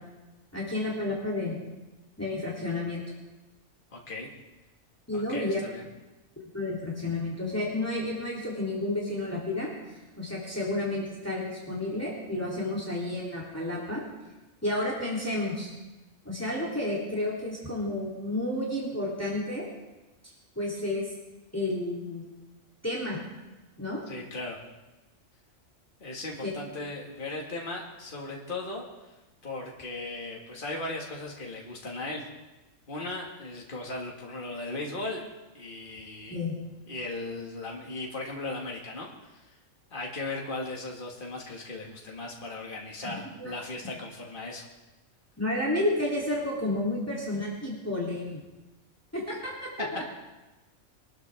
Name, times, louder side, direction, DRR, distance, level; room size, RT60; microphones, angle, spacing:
voice 1, 0.5-1.6 2.2-3.0 5.1-5.6 6.5-14.0 14.6-15.7 16.2-19.7 20.2-21.0 21.5-22.3 22.8-23.2 23.8-24.0 26.4-26.5 36.3-36.5 43.0-43.5 45.4-48.4 49.1-50.0, left 1 dB, 10° left, -5 dB, 3.0 m, -31 dB
voice 2, 3.9-4.3 5.1-5.9 24.1-24.6 26.0-29.1 29.4-32.3 32.9-35.2 35.5-36.4 36.9-39.5 39.9-44.7, left 2 dB, 40° left, -1 dB, 2.1 m, -37 dB
23.5 x 13.0 x 3.5 m, 1.1 s
omnidirectional pair, 1.4 m